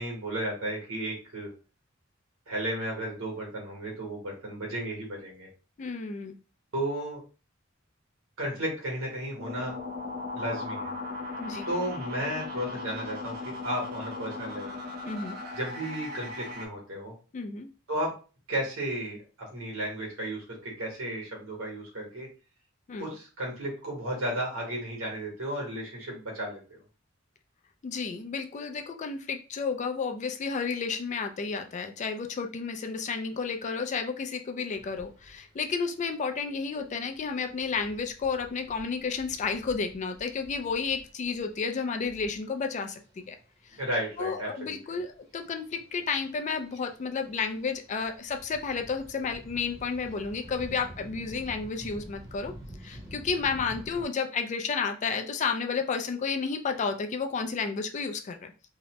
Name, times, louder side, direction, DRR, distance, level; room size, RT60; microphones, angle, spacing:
voice 1, 0.0-1.5 2.5-5.5 6.7-7.2 8.4-9.8 10.3-10.9 11.7-14.7 15.5-17.1 17.9-18.1 18.5-22.3 23.0-26.8 43.8-45.0, right 1 dB, 80° right, -1 dB, 1.3 m, -34 dB
voice 2, 5.8-6.4 11.4-11.7 15.0-15.4 17.3-17.7 22.9-23.0 27.8-43.0 43.3-43.4 44.2-52.5 52.8-58.5, left 5 dB, 35° left, 6 dB, 0.3 m, -31 dB
sound 1, 9.4-16.7, left 3 dB, 50° right, 0.7 m, -37 dB
sound 2, 34.7-54.1, equal, 15° right, 1.0 m, -50 dB
2.7 x 2.1 x 2.9 m, 0.35 s
head